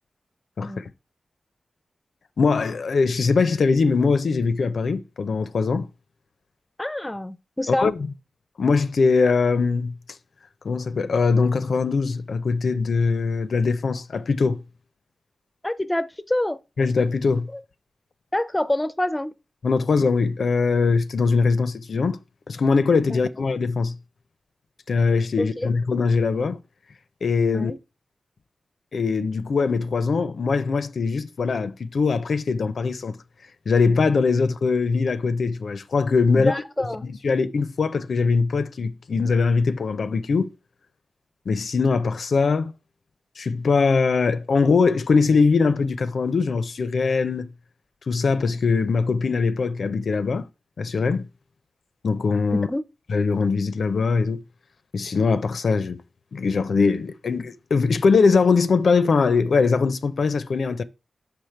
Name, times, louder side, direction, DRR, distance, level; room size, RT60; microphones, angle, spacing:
voice 1, 0.6-0.9 2.4-5.9 7.8-7.9 8.6-9.9 10.6-14.6 16.8-17.5 19.6-22.2 22.5-24.0 24.9-26.6 27.2-27.7 28.9-33.2 33.7-36.5 37.0-40.5 41.5-42.7 43.4-47.5 48.1-50.5 50.8-51.2 52.0-52.7 53.1-54.4 54.9-56.0 56.3-60.8, left 4 dB, 75° left, 0.5 m, -21 dB
voice 2, 6.8-7.9 15.6-16.6 17.5-17.6 18.3-19.3 23.1-23.2 25.4-25.7 27.5-27.8 36.3-37.0 52.5-52.8, left 1 dB, 15° left, 0.5 m, -26 dB
5.8 x 5.1 x 4.5 m
wide cardioid pair, 85°, 0 cm